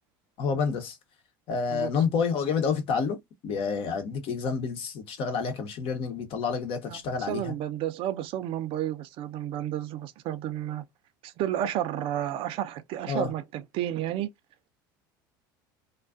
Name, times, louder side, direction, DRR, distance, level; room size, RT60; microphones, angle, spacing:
voice 1, 0.4-1.0 1.5-3.2 3.4-7.5 13.1-13.3, left 5 dB, 55° left, 0.9 m, -29 dB
voice 2, 6.9-10.8 11.2-14.3, right 12 dB, 55° right, 0.4 m, -31 dB
2.4 x 2.3 x 2.4 m
hypercardioid pair, 80°, 11 cm